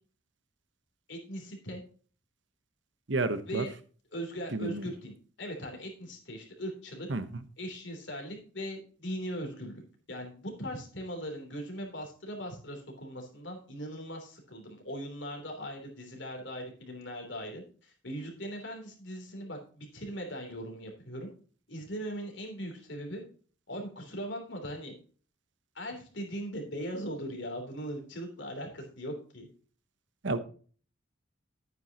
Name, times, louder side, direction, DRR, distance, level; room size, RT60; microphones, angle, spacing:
voice 1, 1.1-1.8 3.5-3.7 4.1-7.1 7.6-9.8 10.1-21.3 21.7-23.2 23.7-24.9 25.7-29.5, equal, 65° left, 2 dB, 3.2 m, -39 dB
voice 2, 3.1-3.6 4.5-4.9 7.1-7.3 30.2-30.4, right 2 dB, 65° right, 12 dB, 1.0 m, -30 dB
11.0 x 9.3 x 2.9 m, 0.41 s
head